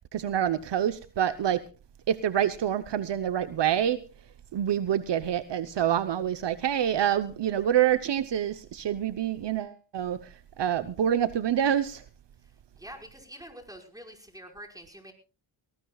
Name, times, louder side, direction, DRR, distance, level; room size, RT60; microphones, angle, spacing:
voice 1, 0.0-1.6 2.1-4.0 4.5-10.3 10.6-12.0, right 10 dB, 65° right, 12 dB, 0.9 m, -27 dB
voice 2, 1.3-1.6 12.8-15.1, equal, 10° right, 3 dB, 5.3 m, -46 dB
20.0 x 18.5 x 2.3 m, 0.33 s
cardioid pair, 65°, 45 cm